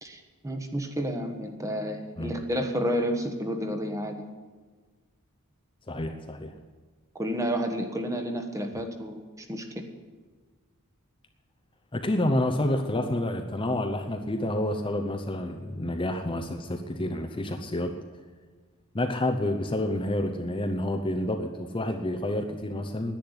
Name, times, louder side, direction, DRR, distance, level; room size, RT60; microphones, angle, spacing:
voice 1, 0.0-4.2 7.1-9.8, equal, 15° right, 5 dB, 1.2 m, -31 dB
voice 2, 5.9-6.5 11.9-18.0 18.9-23.2, left 1 dB, 25° left, 5 dB, 0.7 m, -29 dB
10.5 x 9.9 x 9.9 m, 1.4 s
head